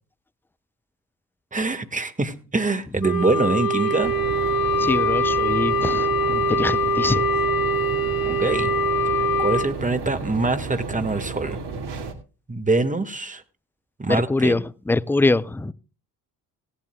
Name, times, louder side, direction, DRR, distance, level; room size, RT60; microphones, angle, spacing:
voice 1, 1.5-4.1 8.2-8.7 9.4-11.6 12.5-13.4 14.0-14.6, right 3 dB, 15° right, 1.6 m, -24 dB
Wind instrument woodwind instrument, 3.0-9.7, equal, 85° left, 2.0 m, -23 dB
sound 1, 4.0-12.1, right 4 dB, 60° right, 1.9 m, -33 dB
voice 2, 4.8-7.2 14.1-15.7, left 2 dB, 5° left, 0.5 m, -23 dB
17.0 x 11.5 x 2.2 m
hypercardioid pair, 45°, 47 cm